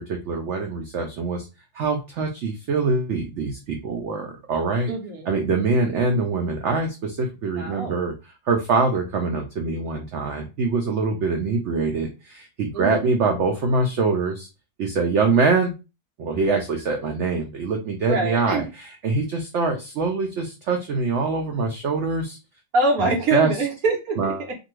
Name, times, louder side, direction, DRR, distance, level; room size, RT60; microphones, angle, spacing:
voice 1, 0.0-1.5 1.7-4.9 5.3-8.1 8.5-14.5 14.8-15.7 16.2-22.4 23.0-23.5 24.2-24.4, right 4 dB, 90° right, 3 dB, 0.6 m, -24 dB
voice 2, 4.9-5.3 7.6-8.0 12.7-13.1 18.1-18.7 22.7-24.5, right 2 dB, 65° right, 1 dB, 1.1 m, -24 dB
2.6 x 2.5 x 3.0 m, 0.28 s
omnidirectional pair, 1.8 m